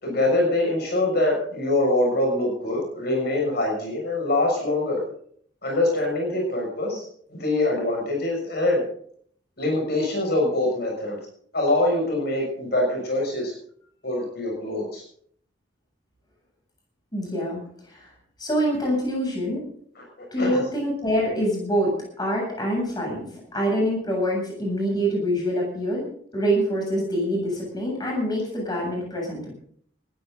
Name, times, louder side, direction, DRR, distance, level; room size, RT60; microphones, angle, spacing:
voice 1, 0.0-5.0 5.6-8.8 9.6-11.2 11.5-13.5 14.0-15.0 20.0-20.1 20.4-20.6, left 2 dB, 55° left, 0 dB, 6.6 m, -24 dB
voice 2, 17.1-17.6 17.9-18.1 18.4-19.7 20.3-29.5, equal, 20° left, -2 dB, 7.9 m, -25 dB
20.0 x 16.0 x 4.0 m, 0.62 s
head